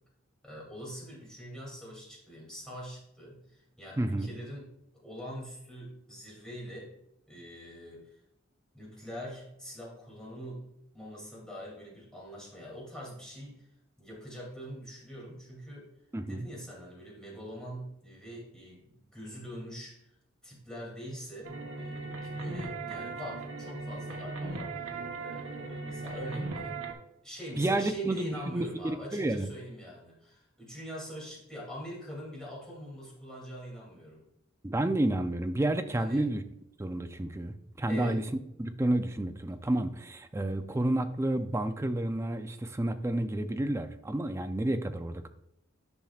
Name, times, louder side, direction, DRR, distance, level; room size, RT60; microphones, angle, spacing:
voice 1, 0.4-4.7 4.9-6.9 7.3-8.2 8.7-13.7 14.0-15.9 16.3-20.1 20.4-24.7 25.1-26.8 27.2-34.2 35.9-36.3 37.9-38.2, equal, 5° left, -5 dB, 2.6 m, -43 dB
voice 2, 4.0-4.3 16.1-16.5 27.6-29.5 34.6-36.4 36.8-38.2 38.6-45.3, right 1 dB, 15° right, 8 dB, 0.4 m, -30 dB
sound 1, 21.4-26.9, right 3 dB, 80° right, 1.1 m, -38 dB
10.5 x 5.8 x 2.4 m, 0.79 s
head